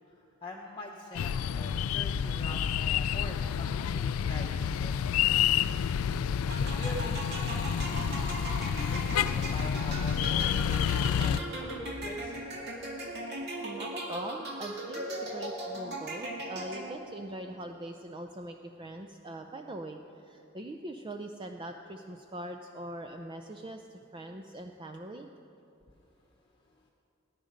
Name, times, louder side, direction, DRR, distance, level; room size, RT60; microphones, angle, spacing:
voice 1, 0.4-4.9 6.8-7.2 8.5-12.3, left 1 dB, 20° left, -2 dB, 0.9 m, -44 dB
sound 1, 1.1-11.4, left 8 dB, 80° left, 0.3 m, -29 dB
sound 2, 6.5-17.2, right 1 dB, 50° right, 2.1 m, -38 dB
voice 2, 13.6-25.3, right 1 dB, 25° right, 5 dB, 0.5 m, -42 dB
19.0 x 10.5 x 5.2 m, 2.8 s
head